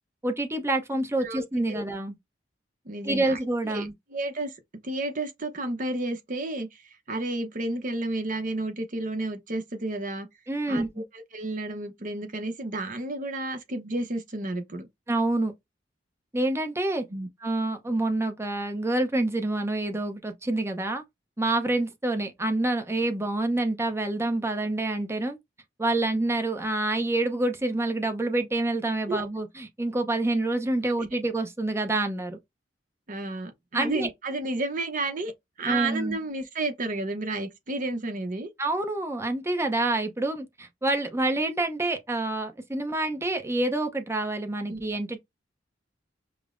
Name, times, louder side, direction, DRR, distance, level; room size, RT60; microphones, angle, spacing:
voice 1, 0.2-2.1 3.0-3.9 10.5-11.0 15.1-15.5 16.3-17.0 17.4-21.0 21.4-25.4 25.8-32.4 33.7-34.1 35.7-36.2 38.6-45.2, right 2 dB, 15° right, 0.6 m, -27 dB
voice 2, 1.2-1.8 2.9-3.4 3.7-4.5 4.8-6.8 7.1-10.3 10.7-14.9 17.1-17.3 29.1-29.2 33.1-35.3 35.6-38.5 44.7-44.8, right 2 dB, 45° right, 0.8 m, -31 dB
5.2 x 2.0 x 2.5 m
head